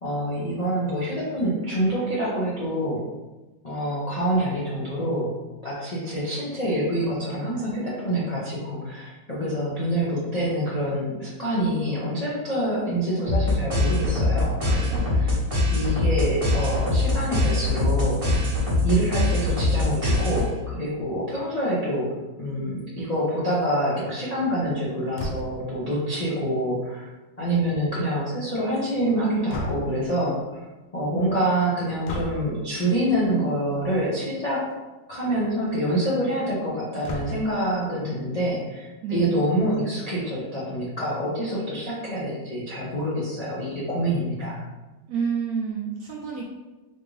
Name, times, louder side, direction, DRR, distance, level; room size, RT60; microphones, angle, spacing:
voice 1, 0.0-3.1 3.6-5.3 5.6-15.3 15.7-18.5 18.8-22.1 22.4-27.1 27.4-30.6 30.9-34.7 35.1-44.6, right 1 dB, 65° left, -8 dB, 0.3 m, -26 dB
sound 1, 13.3-20.7, left 2 dB, 30° right, 0.6 m, -23 dB
sound 2, 25.2-25.7 29.5-30.1 32.0-32.5 33.7-34.0 34.4-34.5 34.7-34.8 37.0-37.6, equal, 85° left, 1.3 m, -33 dB
voice 2, 39.0-39.4 45.1-46.5, right 6 dB, 70° right, -3 dB, 0.9 m, -28 dB
4.2 x 2.5 x 3.2 m, 1.1 s
omnidirectional pair, 2.0 m